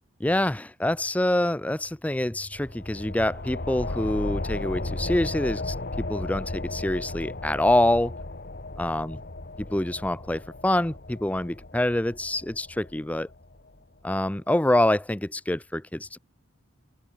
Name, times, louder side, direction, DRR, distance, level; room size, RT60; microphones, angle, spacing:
voice 1, 0.2-8.2 8.8-9.2 9.7-13.3 14.0-16.2, left 1 dB, 5° left, 0.4 m, -26 dB
sound 1, 2.5-13.7, left 2 dB, 50° left, 1.4 m, -35 dB
head